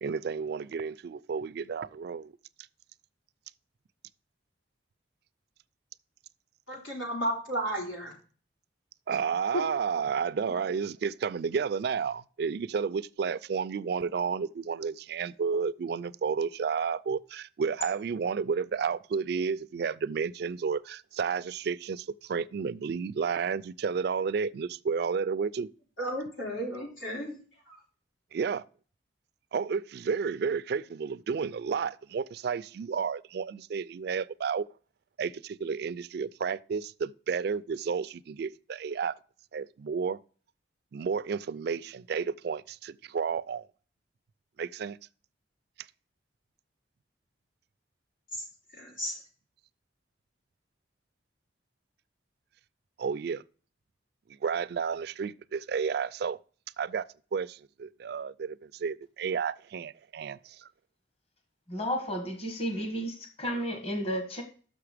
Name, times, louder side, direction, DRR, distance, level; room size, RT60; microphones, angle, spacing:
voice 1, 0.0-2.3 9.1-25.7 28.3-28.6 29.5-34.7 35.2-39.1 39.5-40.2 40.9-43.6 44.6-45.0 53.0-53.4 54.3-56.4 56.8-57.0 57.3-60.7, right 6 dB, 60° right, 0.3 m, -31 dB
voice 2, 6.7-8.1 9.5-9.6 26.0-27.4 27.7-27.8 48.3-48.4 48.8-49.2, equal, 90° left, 4.1 m, -33 dB
voice 3, 61.7-64.4, equal, 30° left, 1.2 m, -32 dB
6.4 x 5.8 x 4.9 m
head